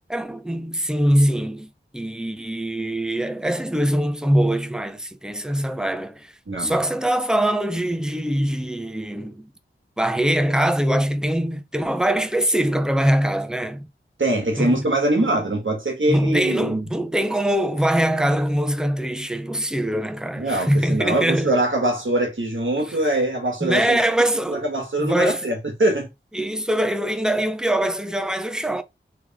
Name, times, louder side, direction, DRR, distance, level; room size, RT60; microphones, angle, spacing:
voice 1, 0.1-6.3 6.6-9.5 10.0-13.8 14.6-14.8 15.2-15.4 16.1-21.5 22.9-23.0 23.6-24.7 25.0-25.5 26.3-28.8, right 1 dB, 5° right, 0.6 m, -23 dB
voice 2, 6.5-6.8 14.2-16.8 20.4-24.0 24.5-26.1, right 1 dB, 70° right, 1.5 m, -23 dB
3.4 x 3.1 x 3.5 m
wide cardioid pair, 40°, 21 cm